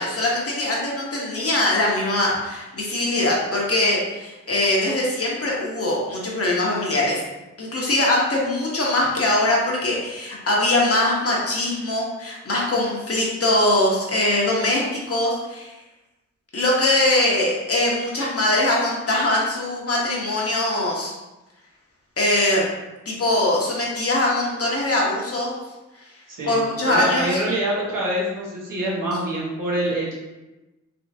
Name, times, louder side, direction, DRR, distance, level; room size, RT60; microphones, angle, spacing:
voice 1, 0.0-7.2 7.6-15.7 16.5-21.1 22.2-22.7 23.1-25.6 26.4-27.4, left 1 dB, 45° left, -3 dB, 1.0 m, -22 dB
voice 2, 26.3-26.6 26.9-30.1, right 1 dB, 90° right, -5 dB, 1.2 m, -25 dB
3.5 x 3.1 x 2.7 m, 1.0 s
cardioid pair, 65°, 31 cm